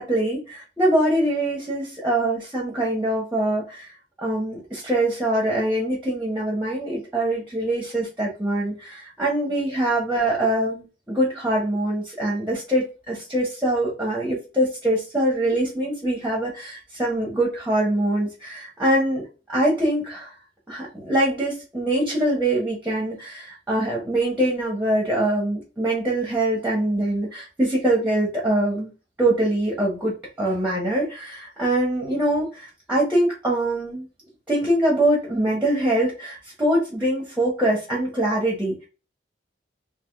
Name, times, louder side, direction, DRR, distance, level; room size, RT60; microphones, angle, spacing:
voice 1, 0.0-3.9 4.2-20.3 20.7-28.9 29.2-34.0 34.5-38.8, right 1 dB, 10° right, -3 dB, 1.1 m, -23 dB
3.5 x 2.9 x 3.4 m, 0.33 s
head